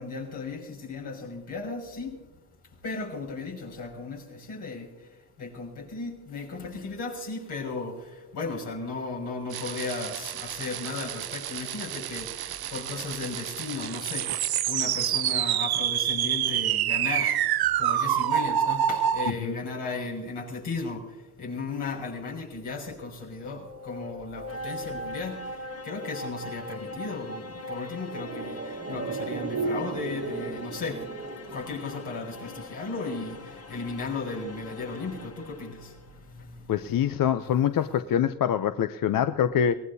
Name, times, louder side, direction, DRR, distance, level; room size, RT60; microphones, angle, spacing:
voice 1, 0.0-2.1 2.8-4.9 5.4-8.0 8.3-12.3 12.7-14.3 14.7-17.4 17.8-21.0 21.4-25.4 25.8-28.6 28.9-31.0 31.5-33.4 33.7-35.7, left 3 dB, 85° left, 6.3 m, -35 dB
sound 1, 9.5-19.3, right 11 dB, 65° right, 0.7 m, -28 dB
sound 2, 23.3-36.1, left 1 dB, 35° left, 1.2 m, -41 dB
sound 3, 27.9-32.5 32.7-32.8, right 3 dB, 35° right, 1.4 m, -35 dB
voice 2, 36.7-39.8, left 9 dB, 55° left, 0.7 m, -25 dB
24.5 x 18.5 x 2.8 m
cardioid pair, 80°, 40 cm